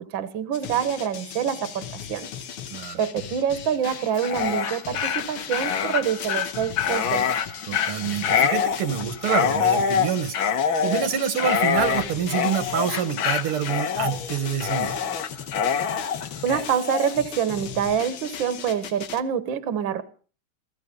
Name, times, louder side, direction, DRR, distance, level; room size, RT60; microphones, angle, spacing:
voice 1, 0.0-2.3 2.9-7.2 16.4-20.0, right 8 dB, 65° right, 1.8 m, -26 dB
sound 1, 0.5-19.2, left 8 dB, 85° left, 2.1 m, -38 dB
Dog, 4.1-17.1, left 7 dB, 70° left, 2.0 m, -25 dB
voice 2, 7.6-10.4 10.8-15.0, right 8 dB, 90° right, 2.3 m, -27 dB
16.5 x 16.0 x 5.3 m
omnidirectional pair, 2.3 m